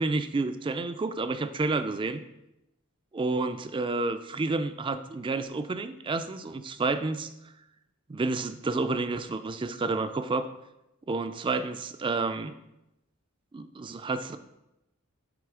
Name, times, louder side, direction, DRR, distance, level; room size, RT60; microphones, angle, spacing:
voice 1, 0.0-2.2 3.1-7.3 8.1-10.5 11.1-12.5 13.5-14.4, right 3 dB, 20° right, 10 dB, 0.3 m, -30 dB
8.9 x 3.2 x 4.8 m, 0.90 s
head